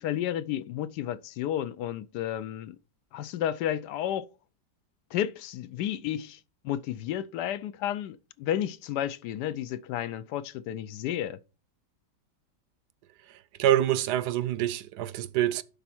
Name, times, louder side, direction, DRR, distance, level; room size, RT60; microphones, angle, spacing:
voice 1, 0.0-2.8 3.1-4.3 5.1-6.4 6.6-11.4, left 11 dB, 80° left, 1.2 m, -32 dB
voice 2, 13.3-15.6, right 12 dB, 75° right, 1.1 m, -26 dB
11.0 x 4.2 x 4.3 m
omnidirectional pair, 1.8 m